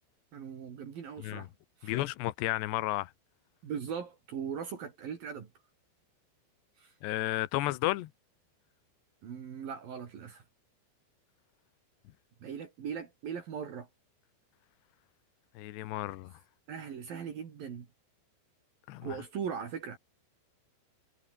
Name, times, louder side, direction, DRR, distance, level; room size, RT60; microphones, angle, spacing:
voice 1, 0.3-1.5 1.8-1.9 3.6-5.5 6.8-6.9 9.2-10.4 12.4-13.9 16.7-17.9 19.0-20.0, right 7 dB, 55° right, 4.3 m, -39 dB
voice 2, 1.8-3.1 7.0-8.1 15.6-16.3 18.9-19.2, left 17 dB, 80° left, 3.2 m, -32 dB
omnidirectional pair, 5.0 m